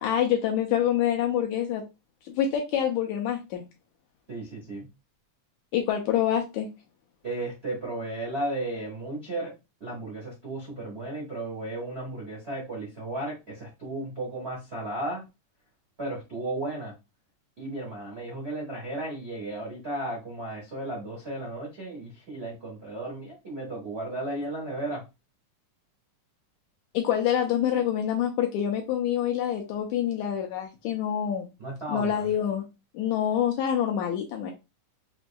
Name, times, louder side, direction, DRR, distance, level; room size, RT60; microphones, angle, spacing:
voice 1, 0.0-1.8 2.2-3.6 5.7-6.7 26.9-31.5 31.9-32.6 32.9-34.5, left 10 dB, 80° left, 1 dB, 1.7 m, -26 dB
voice 2, 4.3-4.9 7.2-9.5 9.8-15.2 16.0-16.9 17.6-25.0 31.6-32.3, right 2 dB, 85° right, -4 dB, 0.5 m, -34 dB
5.9 x 2.6 x 2.3 m, 0.25 s
omnidirectional pair, 3.7 m